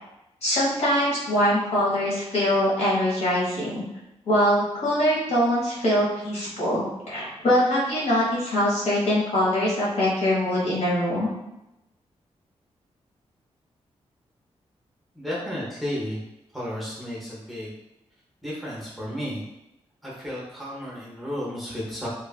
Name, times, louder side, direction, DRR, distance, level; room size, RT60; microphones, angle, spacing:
voice 1, 0.4-3.8 4.3-11.3, equal, 75° left, -7 dB, 1.2 m, -23 dB
voice 2, 15.1-16.2 16.5-17.7 18.4-19.4 20.0-22.1, equal, ahead, -7 dB, 0.7 m, -33 dB
3.1 x 2.3 x 2.2 m, 0.91 s
wide cardioid pair, 155°, 11 cm